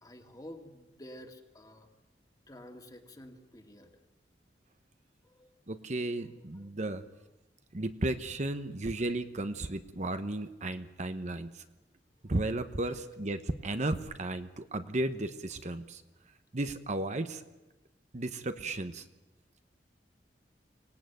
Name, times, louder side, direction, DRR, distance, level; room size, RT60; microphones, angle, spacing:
voice 1, 0.0-1.9 2.5-3.9 5.2-5.5 6.1-6.2 6.5-6.7, equal, 20° left, 5 dB, 2.3 m, -50 dB
voice 2, 5.7-7.0 7.7-11.5 12.3-16.0 16.5-17.4 18.1-19.0, right 2 dB, 45° right, 9 dB, 1.0 m, -34 dB
24.5 x 18.0 x 9.3 m, 1.1 s
head